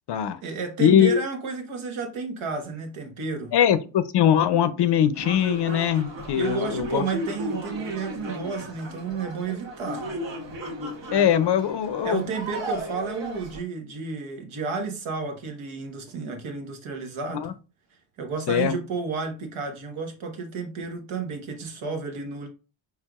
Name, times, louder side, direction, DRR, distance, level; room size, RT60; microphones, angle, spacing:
voice 1, 0.2-3.5 6.3-10.1 12.0-17.5 18.2-22.5, right 4 dB, 75° right, 1.3 m, -32 dB
voice 2, 0.8-1.2 3.5-7.0 11.1-12.2 17.3-17.5 18.5-18.7, left 9 dB, 55° left, 0.5 m, -21 dB
sound 1, 5.1-13.6, right 1 dB, 60° right, 1.7 m, -35 dB
4.5 x 3.4 x 2.3 m
cardioid pair, 100°, 49 cm